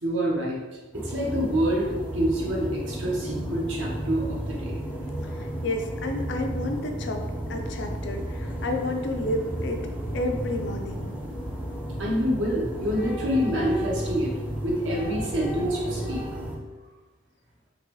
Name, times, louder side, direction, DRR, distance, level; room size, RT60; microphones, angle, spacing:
voice 1, 0.0-0.6 0.9-4.8 12.0-14.3 14.6-16.2, equal, 65° right, -3 dB, 0.9 m, -26 dB
sound 1, 0.9-16.6, right 1 dB, 10° right, 0.5 m, -33 dB
voice 2, 5.2-9.8 10.1-11.1, left 1 dB, 60° left, 4 dB, 0.4 m, -31 dB
4.0 x 3.0 x 3.0 m, 1.2 s
head